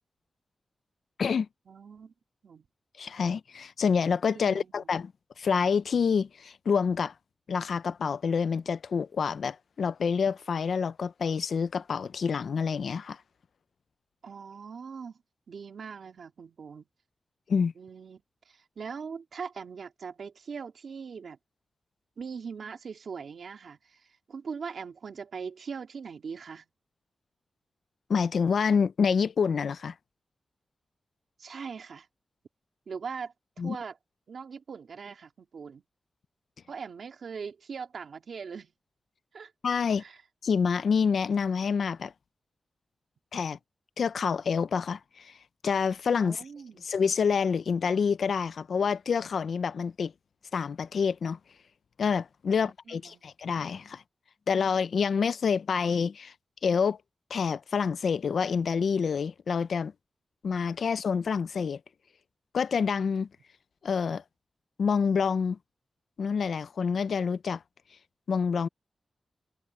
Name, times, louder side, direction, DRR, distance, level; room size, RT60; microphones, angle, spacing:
voice 1, 1.7-2.1 2.4-2.7 4.3-4.7 14.2-15.2 15.5-16.9 17.8-21.4 22.2-26.7 31.4-32.1 32.9-33.3 33.6-34.0 34.3-35.8 36.7-38.7 39.3-39.5 40.0-40.2 46.2-46.9 52.5-53.2, right 6 dB, 75° right, 2.8 m, -41 dB
voice 2, 3.0-5.1 5.4-7.1 7.5-13.2 17.5-17.7 28.1-29.9 33.6-33.8 39.6-40.0 40.4-42.1 43.3-43.6 44.0-45.3 45.6-46.4 46.8-50.1 50.5-51.4 52.0-54.0 54.5-56.3 56.6-57.0 57.3-59.9 60.4-61.8 62.5-63.3 63.8-64.2 64.8-65.6 66.2-67.6 68.3-68.7, left 6 dB, 75° left, 0.5 m, -27 dB
wide cardioid pair, 145°, 0 cm